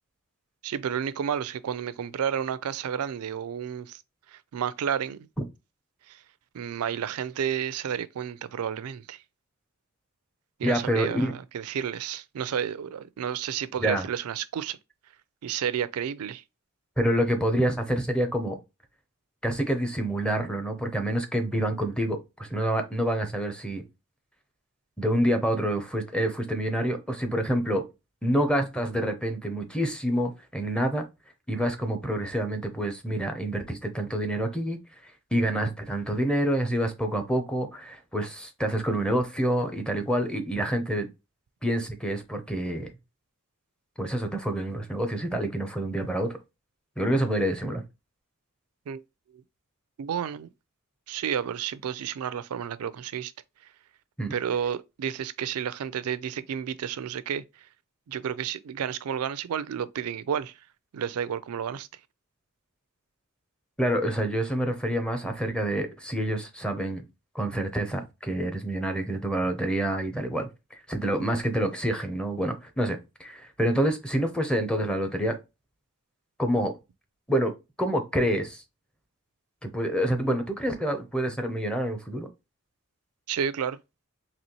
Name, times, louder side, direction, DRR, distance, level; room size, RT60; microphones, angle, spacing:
voice 1, 0.6-4.0 4.3-5.3 6.1-6.2 6.5-9.2 10.6-14.8 15.4-16.4 48.9-49.0 49.3-49.4 50.0-50.5 51.1-53.3 54.3-57.4 58.1-60.6 60.9-61.9 83.3-83.8, right 8 dB, 85° right, 0.4 m, -31 dB
voice 2, 10.6-11.3 13.8-14.1 17.0-18.6 19.4-23.8 25.0-27.8 28.2-31.0 31.5-41.1 41.6-42.9 44.0-46.3 47.0-47.8 54.2-54.3 63.8-67.0 67.3-75.4 76.4-76.7 77.3-77.5 77.8-78.6 79.6-82.3, right 1 dB, 5° left, 0.6 m, -27 dB
4.1 x 2.9 x 2.9 m
head